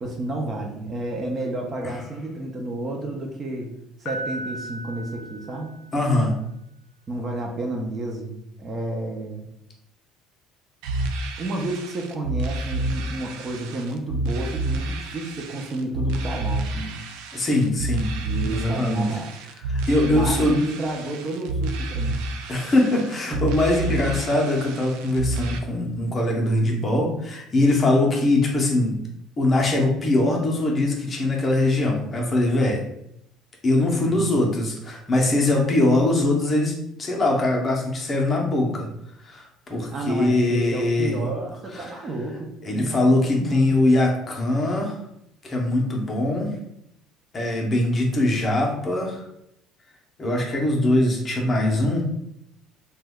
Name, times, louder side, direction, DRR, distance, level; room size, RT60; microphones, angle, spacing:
voice 1, 0.0-3.7 4.0-5.7 7.1-9.4 11.4-17.0 18.2-19.6 20.0-22.2 34.1-34.3 39.9-43.7, right 2 dB, 25° right, 1 dB, 0.5 m, -31 dB
Piano, 4.0-6.2, right 1 dB, 65° left, 0.5 m, -36 dB
voice 2, 5.9-6.4 17.3-18.1 18.5-19.1 19.7-20.6 22.5-29.0 29.4-32.8 33.6-36.7 37.0-38.9 39.2-41.2 41.7-41.9 42.6-45.0 45.4-46.5 47.3-49.3 50.2-52.0, left 2 dB, 25° left, -1 dB, 0.6 m, -22 dB
sound 1, 10.8-25.6, right 2 dB, 85° right, 0.4 m, -29 dB
2.9 x 2.2 x 3.5 m, 0.78 s
cardioid pair, 150°, 0 cm